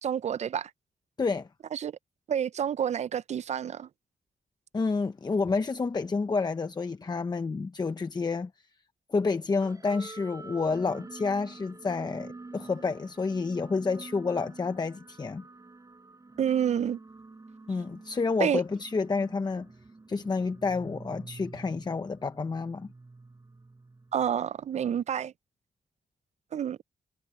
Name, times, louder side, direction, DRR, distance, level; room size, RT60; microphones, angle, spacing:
voice 1, 0.0-0.7 1.7-1.9 2.3-3.9 16.4-17.0 18.4-18.6 24.1-25.3 26.5-26.8, right 9 dB, 55° right, 0.5 m, -28 dB
voice 2, 4.7-8.5 9.1-15.4 17.7-19.7 20.1-22.9, left 4 dB, 30° left, 0.8 m, -29 dB
sound 1, 9.6-24.4, right 3 dB, 25° right, 4.8 m, -47 dB
wide cardioid pair, 105°, 14 cm